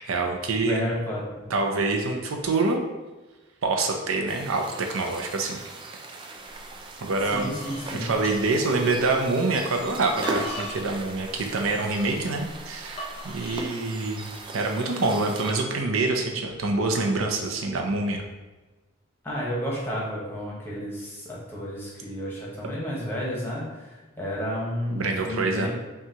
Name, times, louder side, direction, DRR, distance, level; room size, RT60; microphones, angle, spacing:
voice 1, 0.0-0.9 1.5-2.8 3.6-5.6 7.0-7.5 8.0-13.0 13.2-18.2 24.9-25.7, right 3 dB, 75° right, 2 dB, 0.5 m, -26 dB
voice 2, 0.6-1.4 7.3-8.1 8.8-8.9 19.2-25.7, equal, 10° left, -5 dB, 1.0 m, -32 dB
sound 1, 4.3-15.5, right 2 dB, 25° right, 0.3 m, -39 dB
sound 2, 6.6-6.8 7.1-9.2 9.8-13.7, right 1 dB, 30° left, 0.7 m, -38 dB
5.6 x 2.4 x 2.8 m, 1.2 s
head